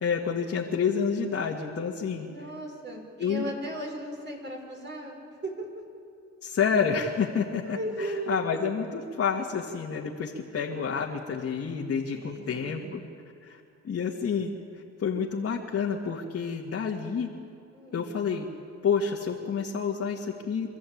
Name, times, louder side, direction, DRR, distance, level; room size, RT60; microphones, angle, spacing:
voice 1, 0.0-2.3 3.2-3.4 6.4-13.0 13.4-13.6 13.8-14.5 15.0-17.3 17.9-18.5 18.8-20.8, left 6 dB, 50° left, -3 dB, 2.1 m, -29 dB
voice 2, 2.2-5.2 5.4-5.7 7.6-8.4 12.1-12.9 17.7-18.1, right 1 dB, 35° right, 1 dB, 5.6 m, -36 dB
26.5 x 14.0 x 8.8 m, 2.5 s
cardioid pair, 90°, 30 cm